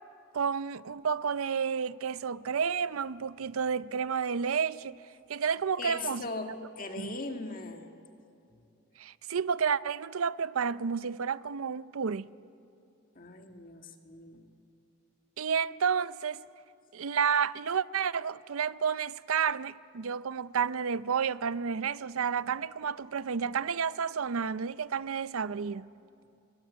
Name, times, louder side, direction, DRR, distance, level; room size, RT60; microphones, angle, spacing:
voice 1, 0.3-5.0 5.3-6.5 7.0-7.1 9.0-12.3 15.4-16.4 16.9-25.9, right 6 dB, 90° right, 0.6 m, -31 dB
voice 2, 5.8-7.9 13.2-14.5, left 3 dB, 40° left, 1.8 m, -39 dB
27.0 x 22.5 x 9.4 m
head